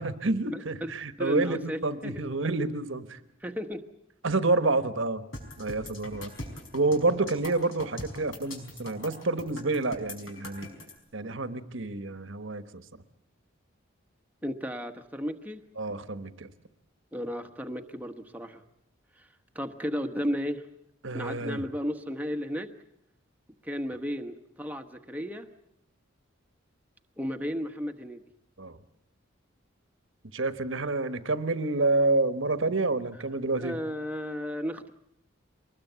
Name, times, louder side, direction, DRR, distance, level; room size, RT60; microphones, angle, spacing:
voice 1, 0.0-3.2 4.2-5.2 5.6-6.3 6.7-10.7 11.1-12.8 15.8-16.5 21.0-21.6 28.6-28.8 30.3-33.8, right 2 dB, 70° right, 11 dB, 1.3 m, -28 dB
voice 2, 0.5-0.9 1.2-2.2 3.4-3.9 14.4-15.6 17.1-18.6 19.2-19.3 19.5-20.6 21.1-22.7 23.6-25.5 27.2-28.2 33.5-34.9, equal, 10° right, 5 dB, 1.2 m, -34 dB
sound 1, 5.3-10.9, left 2 dB, 80° left, 5.2 m, -41 dB
23.5 x 20.0 x 8.1 m, 0.76 s
head